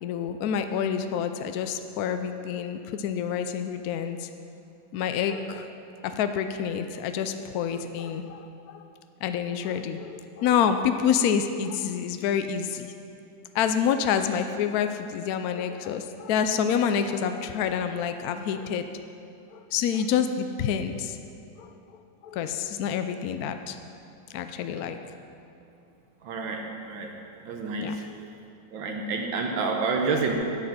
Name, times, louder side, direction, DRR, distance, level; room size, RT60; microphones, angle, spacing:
voice 1, 0.0-4.3 4.9-8.9 9.2-12.9 13.5-18.8 19.5-21.2 21.6-21.7 22.2-23.8 24.3-25.0 27.8-28.0, left 8 dB, 75° left, 8 dB, 0.8 m, -28 dB
voice 2, 26.2-27.1 27.4-28.0 28.7-30.3, right 4 dB, 80° right, 2 dB, 1.6 m, -28 dB
8.6 x 8.1 x 6.3 m, 2.6 s
omnidirectional pair, 2.1 m